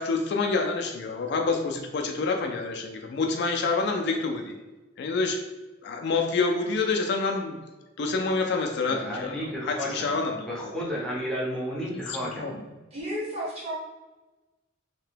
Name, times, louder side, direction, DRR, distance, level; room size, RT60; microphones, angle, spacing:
voice 1, 0.0-4.6 5.0-5.4 5.8-7.6 8.0-10.5 12.1-12.6, left 3 dB, 55° left, 3 dB, 0.3 m, -27 dB
voice 2, 8.9-10.1 10.5-12.5, equal, 5° left, -6 dB, 0.5 m, -32 dB
voice 3, 12.9-13.7, equal, 30° right, -6 dB, 1.0 m, -32 dB
2.8 x 2.2 x 3.2 m, 1.1 s
head